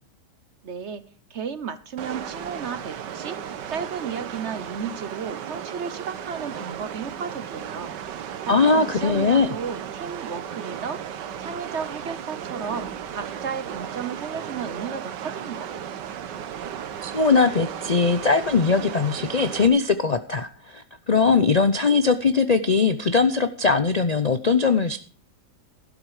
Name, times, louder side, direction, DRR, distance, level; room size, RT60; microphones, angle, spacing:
voice 1, 0.6-1.0 1.3-7.9 8.2-15.7, right 6 dB, 50° right, 13 dB, 1.0 m, -34 dB
sound 1, 2.0-19.7, right 9 dB, 85° right, 1.6 m, -35 dB
voice 2, 8.5-9.5 17.0-25.0, left 4 dB, 80° left, 11 dB, 0.3 m, -20 dB
12.5 x 11.5 x 4.9 m, 0.40 s
omnidirectional pair, 1.8 m